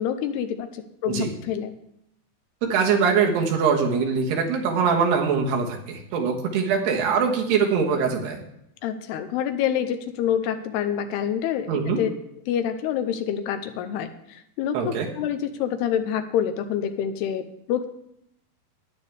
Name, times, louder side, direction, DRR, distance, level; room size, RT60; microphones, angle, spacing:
voice 1, 0.0-1.8 8.8-12.1 12.5-17.9, left 9 dB, 80° left, 8 dB, 2.7 m, -27 dB
voice 2, 2.6-8.4 11.7-12.0 14.7-15.1, right 6 dB, 75° right, 1 dB, 3.4 m, -22 dB
13.5 x 10.0 x 3.4 m, 0.77 s
omnidirectional pair, 5.0 m